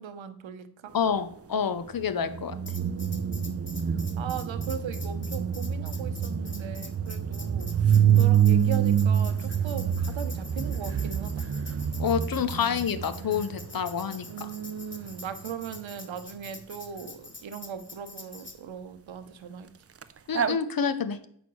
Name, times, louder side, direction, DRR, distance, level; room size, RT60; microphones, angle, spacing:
voice 1, 0.0-0.9 2.2-3.6 4.2-11.4 14.2-19.7, right 7 dB, 75° right, 10 dB, 0.8 m, -39 dB
voice 2, 0.9-2.6 12.0-14.5 20.3-21.2, left 7 dB, 50° left, 12 dB, 0.7 m, -28 dB
sound 1, 2.3-13.8 20.0-20.1 20.3-20.5, right 8 dB, 30° right, 0.5 m, -26 dB
Tambourine, 2.7-18.6, left 3 dB, 25° left, 1.0 m, -46 dB
7.1 x 6.0 x 3.0 m, 0.67 s
cardioid pair, 40°, 46 cm